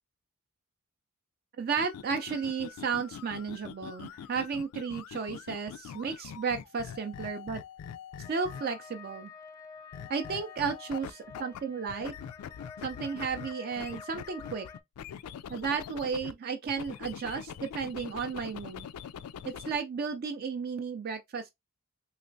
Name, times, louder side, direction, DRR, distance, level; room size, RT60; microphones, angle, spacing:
voice 1, 1.6-7.6 8.3-9.3 10.1-12.1 12.8-14.7 15.5-18.9 19.4-21.5, right 5 dB, 45° right, 0.3 m, -33 dB
sound 1, 1.7-8.9 9.9-11.6 11.9-16.3 16.7-19.8, left 8 dB, 80° left, 0.3 m, -43 dB
sound 2, 8.2-14.8, left 5 dB, 15° left, 0.5 m, -49 dB
3.2 x 2.9 x 2.6 m
head